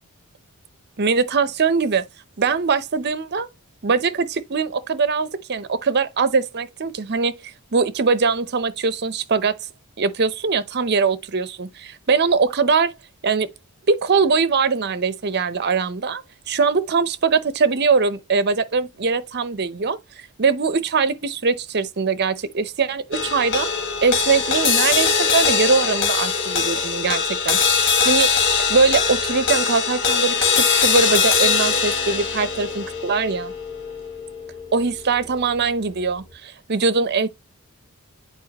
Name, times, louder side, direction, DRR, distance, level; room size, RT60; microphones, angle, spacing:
voice 1, 1.0-2.0 2.4-3.5 3.8-9.5 10.0-12.9 13.2-13.5 13.9-23.7 24.0-28.3 28.7-33.5 34.7-37.3, right 4 dB, 50° right, 0.7 m, -22 dB
sound 1, 23.1-35.6, left 5 dB, 55° left, 1.7 m, -21 dB
8.2 x 4.7 x 2.9 m
head